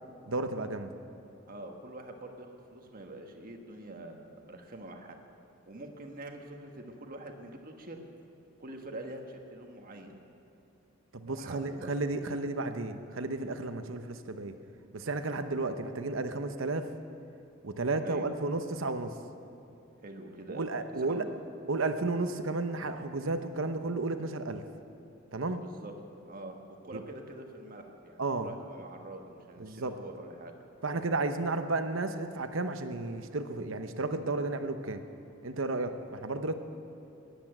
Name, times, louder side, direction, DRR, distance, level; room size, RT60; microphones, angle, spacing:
voice 1, 0.2-0.9 11.1-14.5 14.9-16.9 17.6-19.1 20.5-21.2 21.7-24.6 25.3-25.6 26.9-27.0 28.2-28.5 29.6-29.9 30.8-35.0 35.4-36.5, right 3 dB, 75° right, 8 dB, 0.9 m, -33 dB
voice 2, 1.5-5.2 5.7-8.0 8.6-10.1 11.2-11.9 18.0-18.3 20.0-20.7 21.0-21.3 25.6-25.9 26.2-30.5, right 1 dB, 45° right, 3 dB, 1.4 m, -45 dB
13.5 x 10.5 x 9.0 m, 3.0 s
head